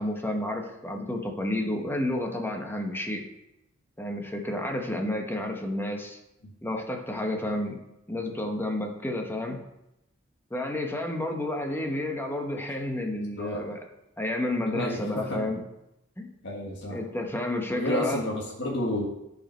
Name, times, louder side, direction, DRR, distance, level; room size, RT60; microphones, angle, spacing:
voice 1, 0.0-3.2 4.0-6.2 6.6-7.8 8.1-9.6 10.5-13.8 14.2-15.6 16.2-16.3 16.9-18.2, left 1 dB, 10° left, 2 dB, 1.0 m, -30 dB
voice 2, 14.6-15.4 16.4-17.0 17.7-19.1, left 1 dB, 60° left, -3 dB, 1.5 m, -31 dB
10.5 x 5.1 x 4.4 m, 0.88 s
head